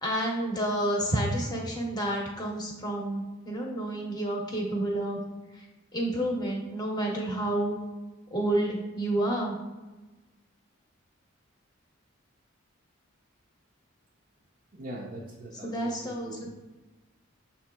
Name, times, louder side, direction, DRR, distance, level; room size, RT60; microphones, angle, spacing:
voice 1, 0.0-5.2 5.5-5.6 5.9-7.7 8.3-9.6 15.6-16.5, right 1 dB, 20° left, -1 dB, 0.8 m, -29 dB
voice 2, 14.7-16.5, right 1 dB, 40° right, -4 dB, 0.5 m, -42 dB
6.6 x 2.8 x 2.3 m, 1.1 s
head